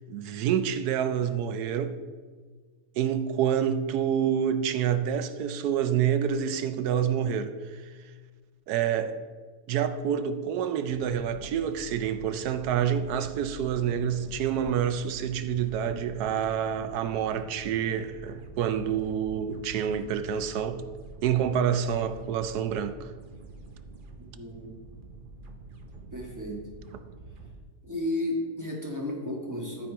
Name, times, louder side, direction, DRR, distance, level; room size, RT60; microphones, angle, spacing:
voice 1, 0.1-2.0 3.0-7.8 8.7-9.2 9.7-20.8 21.2-23.1, right 8 dB, 80° right, 1.1 m, -27 dB
sound 1, 10.9-27.6, right 3 dB, 45° right, 0.7 m, -46 dB
voice 2, 24.3-24.8 26.1-26.7 27.8-29.9, left 1 dB, 10° right, 1.3 m, -33 dB
13.0 x 4.5 x 4.5 m
omnidirectional pair, 1.7 m